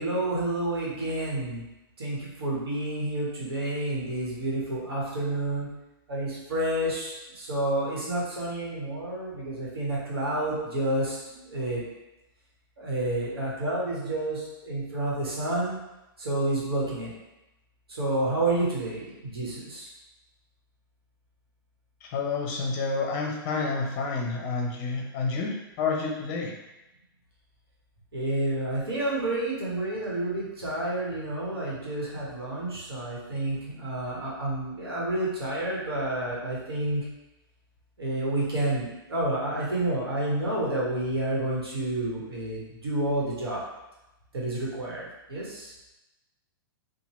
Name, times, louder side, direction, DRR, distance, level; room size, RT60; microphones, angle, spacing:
voice 1, 0.0-1.6 2.0-5.7 6.1-11.8 12.8-15.8 16.2-17.1 17.9-19.9 28.1-37.0 38.0-43.6 44.3-45.0 45.3-45.7, right 1 dB, 90° right, -5 dB, 1.1 m, -29 dB
voice 2, 22.0-26.5, left 4 dB, 40° left, 1 dB, 0.6 m, -29 dB
2.8 x 2.2 x 3.0 m, 0.97 s
hypercardioid pair, 125°, 12 cm